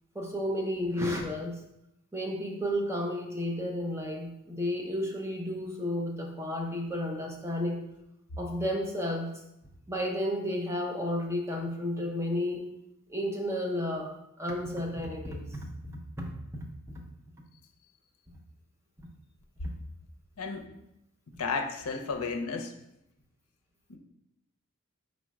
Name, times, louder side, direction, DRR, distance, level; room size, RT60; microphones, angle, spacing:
voice 1, 0.1-1.6 2.1-7.8 8.4-9.3 9.9-12.7 13.1-16.3, left 1 dB, 10° right, 0 dB, 0.6 m, -32 dB
voice 2, 21.4-22.7 23.9-24.0, left 4 dB, 80° left, 4 dB, 0.5 m, -33 dB
5.0 x 2.1 x 4.7 m, 0.84 s
head